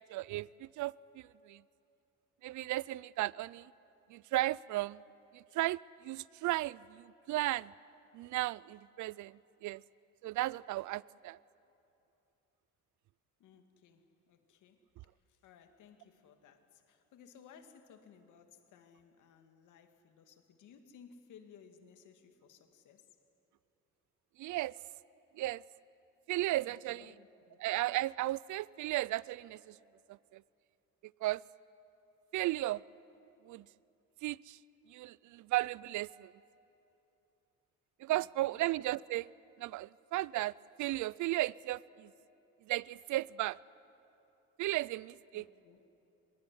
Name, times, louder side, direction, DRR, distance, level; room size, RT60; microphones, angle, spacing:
voice 1, 0.1-1.6 2.4-3.7 4.1-5.0 5.3-7.7 8.1-9.8 10.2-11.4 24.4-24.8 25.4-25.6 26.3-27.1 27.6-29.8 30.3-30.4 31.2-31.4 32.3-32.8 33.5-33.6 34.2-34.6 34.9-36.3 38.0-39.3 39.6-40.5 40.8-42.1 42.7-43.6 44.6-45.5, right 17 dB, 75° right, 23 dB, 0.5 m, -35 dB
voice 2, 13.4-14.8 15.3-23.1 26.7-27.6 38.1-38.6 45.3-45.8, left 7 dB, 80° left, 7 dB, 2.1 m, -59 dB
23.5 x 21.0 x 9.9 m, 2.9 s
cardioid pair, 90°, 30 cm